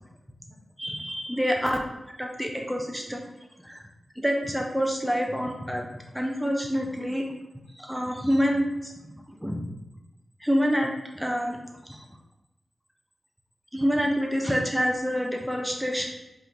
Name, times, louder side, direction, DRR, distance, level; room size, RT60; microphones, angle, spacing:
voice 1, 0.8-1.8 2.2-3.2 3.6-3.8 4.2-5.9 6.1-7.3 7.8-8.9 9.4-9.7 10.4-11.6 11.8-12.0 13.7-16.1, equal, ahead, 0 dB, 0.5 m, -27 dB
3.3 x 3.0 x 3.8 m, 1.0 s
wide cardioid pair, 75°, 0 cm